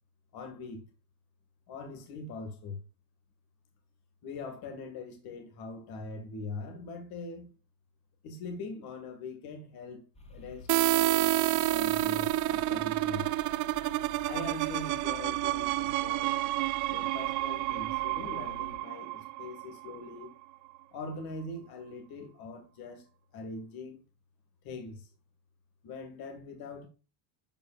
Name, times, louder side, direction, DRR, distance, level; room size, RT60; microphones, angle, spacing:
voice 1, 0.3-0.8 1.7-2.8 4.2-7.5 8.2-10.0 10.3-10.7 10.9-13.3 14.3-16.4 16.9-20.3 20.9-23.1 23.3-24.0 24.6-25.1 25.8-26.9, left 3 dB, 55° left, 2.1 m, -42 dB
sound 1, 10.1-18.8, left 2 dB, 15° left, 2.0 m, -50 dB
sound 2, 10.7-20.3, right 17 dB, 45° right, 0.4 m, -29 dB
11.0 x 5.0 x 2.5 m
supercardioid pair, 105°, 43 cm